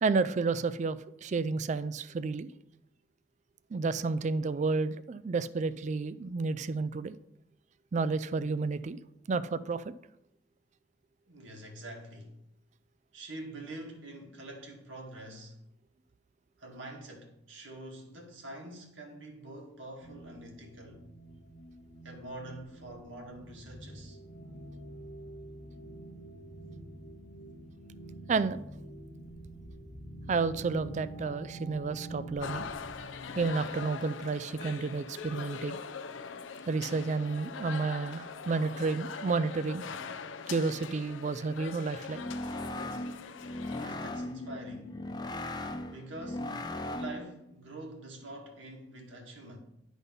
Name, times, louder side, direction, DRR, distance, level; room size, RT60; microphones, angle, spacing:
voice 1, 0.0-2.5 3.7-7.1 7.9-9.0 9.3-9.9 28.3-28.6 30.3-32.7 33.4-35.8 36.7-39.8 40.5-42.2, right 4 dB, 40° right, 0.3 m, -31 dB
voice 2, 11.3-12.4 13.1-15.6 16.6-21.0 22.0-24.2 43.7-45.0 45.9-49.6, right 1 dB, 85° right, 2.0 m, -45 dB
sound 1, 20.0-33.9, right 2 dB, 60° left, 1.2 m, -47 dB
sound 2, 32.4-43.9, left 6 dB, 85° left, 0.5 m, -42 dB
sound 3, 42.1-47.4, left 1 dB, 20° left, 0.6 m, -38 dB
10.5 x 4.1 x 5.3 m
head